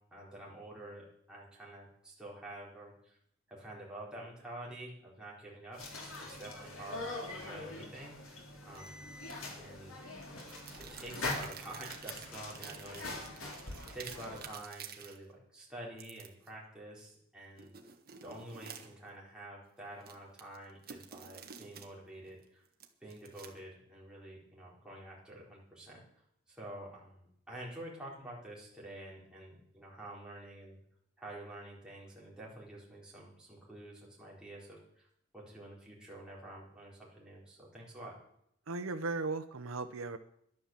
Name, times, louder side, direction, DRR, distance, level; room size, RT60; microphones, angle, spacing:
voice 1, 0.1-3.2 3.5-9.0 9.5-10.0 10.8-13.5 13.9-17.7 18.2-22.6 23.0-26.0 26.5-30.8 31.2-35.1 35.3-38.1, right 1 dB, 5° right, -5 dB, 4.3 m, -48 dB
sound 1, 5.7-14.5, left 2 dB, 75° left, 3.5 m, -43 dB
sound 2, 8.7-8.9 10.4-15.2 16.0-16.5 17.6-19.1 19.9-21.9 22.3-23.7, right 8 dB, 45° right, 1.5 m, -50 dB
voice 2, 38.7-40.2, right 3 dB, 75° right, 8 dB, 0.7 m, -36 dB
11.5 x 11.0 x 7.3 m, 0.72 s
head